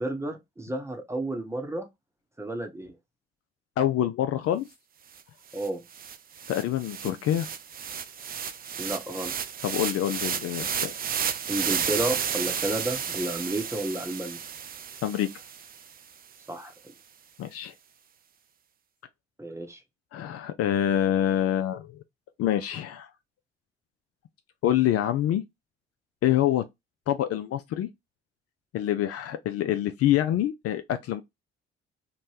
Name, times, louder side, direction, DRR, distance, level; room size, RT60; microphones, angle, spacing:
voice 1, 0.0-1.9 2.4-2.9 5.5-5.8 8.8-9.3 11.5-14.4 16.5-16.7 19.4-19.8, right 1 dB, 10° right, 0.9 m, -31 dB
voice 2, 3.8-4.7 6.5-7.5 9.6-10.9 15.0-15.3 17.4-17.7 20.1-21.9 22.4-23.1 24.6-25.4 26.2-26.6 27.1-27.9 28.7-31.2, left 11 dB, 50° left, 0.4 m, -26 dB
sound 1, 5.2-5.3 5.5-15.9, right 7 dB, 30° right, 0.4 m, -32 dB
2.6 x 2.1 x 3.2 m
hypercardioid pair, 45°, 30 cm